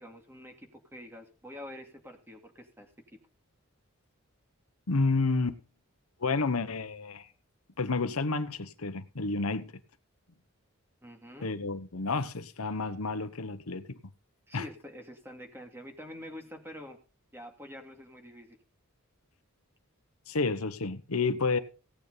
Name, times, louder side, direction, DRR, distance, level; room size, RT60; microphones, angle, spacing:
voice 1, 0.0-2.9 11.0-11.5 14.5-17.0 17.3-18.6, left 1 dB, 10° right, 2.4 m, -46 dB
voice 2, 4.9-5.6 6.2-7.3 7.8-9.8 11.4-14.0 14.5-14.7 20.3-21.6, left 3 dB, 85° left, 1.0 m, -30 dB
17.0 x 8.9 x 4.0 m
head